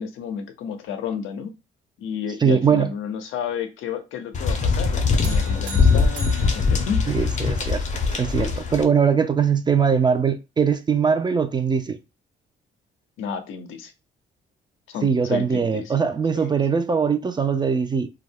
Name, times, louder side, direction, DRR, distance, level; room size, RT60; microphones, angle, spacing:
voice 1, 0.0-1.5 2.0-7.1 13.2-13.9 14.9-15.9 16.3-16.5, left 7 dB, 80° left, 0.6 m, -31 dB
voice 2, 2.4-2.9 7.1-7.8 8.2-12.0 15.0-18.1, right 6 dB, 20° right, 0.3 m, -21 dB
sound 1, 4.3-8.8, left 4 dB, 35° left, 0.6 m, -21 dB
sound 2, 5.2-7.7, right 3 dB, 65° right, 0.6 m, -40 dB
2.3 x 2.0 x 3.4 m
cardioid pair, 90°, 20 cm